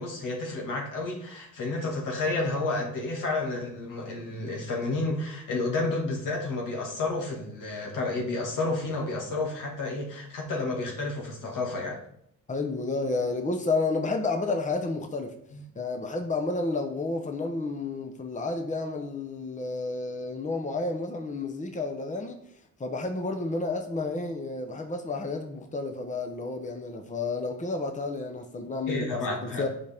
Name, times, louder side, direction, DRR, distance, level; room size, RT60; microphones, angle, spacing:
voice 1, 0.0-12.0 15.5-15.6 28.9-29.7, left 2 dB, 80° left, 2.2 m, -31 dB
voice 2, 12.5-15.3 15.8-22.4 22.8-29.0 29.4-29.7, left 3 dB, 25° left, 1.0 m, -31 dB
9.3 x 5.2 x 3.6 m
cardioid pair, 85°, 31 cm